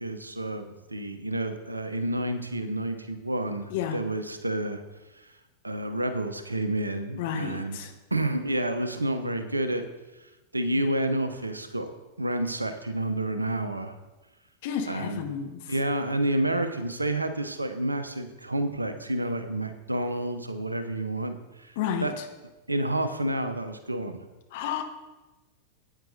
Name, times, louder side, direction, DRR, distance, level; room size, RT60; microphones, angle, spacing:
voice 1, 0.0-4.8 5.2-5.3 5.6-7.8 8.1-9.8 10.5-11.9 12.2-14.0 14.9-15.2 15.7-21.7 22.0-22.1 22.7-24.2, right 1 dB, 80° right, 9 dB, 0.7 m, -29 dB
voice 2, 7.2-7.9 14.6-15.7 21.8-22.1 24.5-24.8, left 8 dB, 50° left, 5 dB, 1.0 m, -31 dB
13.5 x 9.0 x 2.7 m, 1.1 s
figure-of-eight pair, 90°, 0 cm